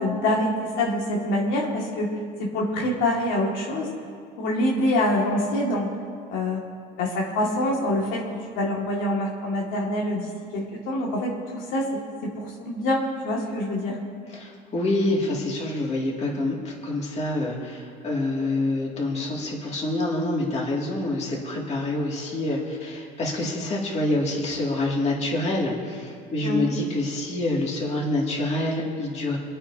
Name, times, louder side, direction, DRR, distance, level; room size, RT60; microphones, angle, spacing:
voice 1, 0.0-2.1 2.4-4.0 4.4-5.9 6.3-6.6 7.0-8.2 8.5-11.9 12.4-14.0 26.4-26.7, left 1 dB, 85° left, -3 dB, 2.2 m, -25 dB
voice 2, 14.3-29.4, left 2 dB, 35° left, -3 dB, 2.5 m, -26 dB
26.0 x 9.1 x 2.8 m, 2.2 s
cardioid pair, 135°, 19 cm